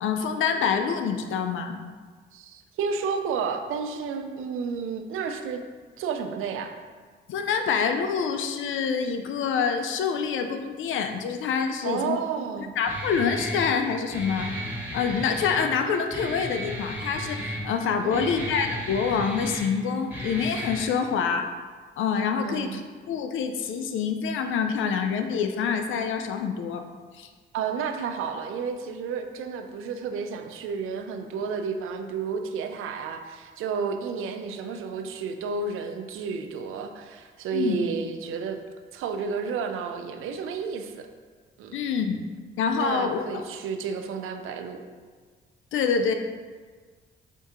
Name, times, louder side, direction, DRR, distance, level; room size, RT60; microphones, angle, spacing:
voice 1, 0.0-1.8 7.3-12.2 12.8-14.5 14.9-21.5 22.0-22.8 23.1-26.8 27.1-27.3 37.5-37.8 41.7-42.2 42.6-43.4 45.7-46.1, left 6 dB, 70° left, 7 dB, 0.5 m, -26 dB
voice 2, 2.3-5.6 6.0-6.7 11.8-12.8 18.0-18.4 22.4-22.8 27.5-38.6 38.9-41.1 41.6-41.8 42.8-44.8, right 5 dB, 80° right, 6 dB, 0.4 m, -31 dB
Guitar, 12.8-20.8, equal, 10° right, 1.2 m, -35 dB
4.4 x 2.7 x 3.6 m, 1.5 s
cardioid pair, 70°, 21 cm